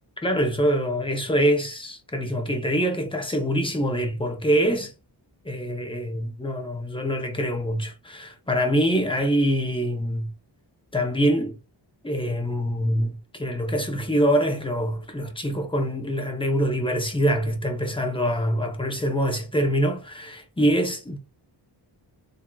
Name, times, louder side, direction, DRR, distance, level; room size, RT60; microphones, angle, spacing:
voice 1, 0.2-4.9 5.4-10.3 10.9-11.6 12.0-21.2, equal, 10° left, 0.8 m, -24 dB
3.9 x 2.7 x 2.3 m
wide cardioid pair, 95°, 44 cm